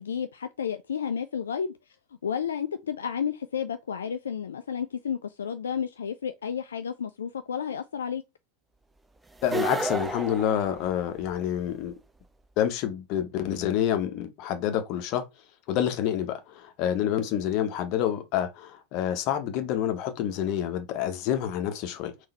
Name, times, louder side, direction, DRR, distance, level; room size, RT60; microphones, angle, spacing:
voice 1, 0.0-2.0 2.2-8.2, left 7 dB, 65° left, 0.3 m, -32 dB
voice 2, 9.4-11.9 12.6-15.2 15.7-22.1, left 10 dB, 40° left, 0.8 m, -28 dB
sound 1, 9.4-11.4, right 2 dB, 10° right, 0.4 m, -32 dB
3.8 x 2.7 x 4.1 m
figure-of-eight pair, 90°, 0 cm